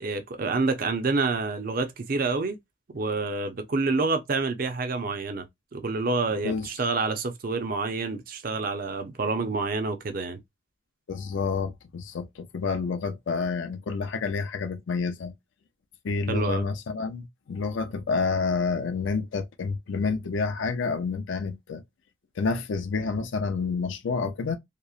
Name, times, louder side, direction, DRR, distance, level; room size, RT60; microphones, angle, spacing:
voice 1, 0.0-2.6 2.9-5.5 5.7-10.4 16.3-16.6, right 3 dB, 45° right, 0.5 m, -28 dB
voice 2, 11.1-15.3 16.0-21.8 22.4-24.6, left 4 dB, 70° left, 0.4 m, -29 dB
2.9 x 2.0 x 2.3 m
head